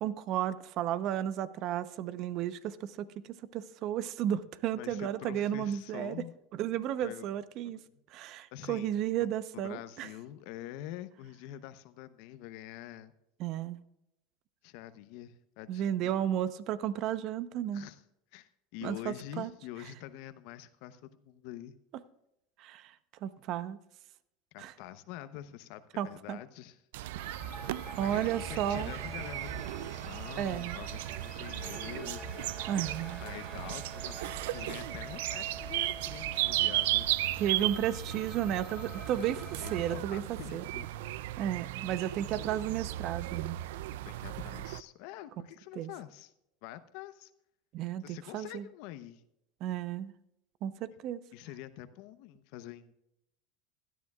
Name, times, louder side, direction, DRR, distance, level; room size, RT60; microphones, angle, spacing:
voice 1, 0.0-6.1 6.5-7.8 8.1-10.1 13.4-13.8 15.7-17.9 18.8-19.5 22.6-22.9 23.2-23.8 24.6-24.7 26.0-26.4 27.1-27.4 28.0-28.9 30.4-30.8 32.7-33.2 37.4-40.2 40.5-40.6 41.4-43.6 45.8-45.9 47.7-48.7 49.6-50.1 50.6-51.2, right 10 dB, 55° right, 14 dB, 0.8 m, -33 dB
voice 2, 4.8-6.3 7.0-7.3 7.6-8.0 8.5-8.9 9.2-13.1 14.6-16.1 17.7-18.0 18.3-21.8 24.5-26.8 28.0-32.4 33.2-37.1 39.6-40.9 44.0-46.3 46.6-47.3 48.0-49.2 51.3-52.9, left 13 dB, 65° left, 12 dB, 0.8 m, -46 dB
sound 1, 26.9-44.8, right 15 dB, 80° right, 0.4 m, -36 dB
sound 2, 27.2-39.9, right 1 dB, 5° right, 3.4 m, -46 dB
17.0 x 12.5 x 2.4 m, 0.83 s
supercardioid pair, 115°, 0 cm